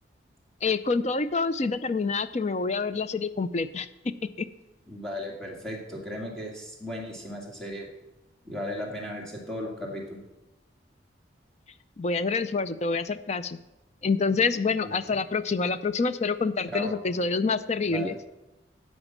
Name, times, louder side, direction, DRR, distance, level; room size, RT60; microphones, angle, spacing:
voice 1, 0.6-4.5 12.0-13.6 14.0-18.1, left 4 dB, 35° left, 13 dB, 0.4 m, -27 dB
voice 2, 4.9-7.9 8.4-10.2 14.8-14.9 16.7-17.0 17.9-18.2, left 1 dB, 5° left, -2 dB, 2.1 m, -36 dB
13.0 x 5.3 x 7.3 m, 0.99 s
head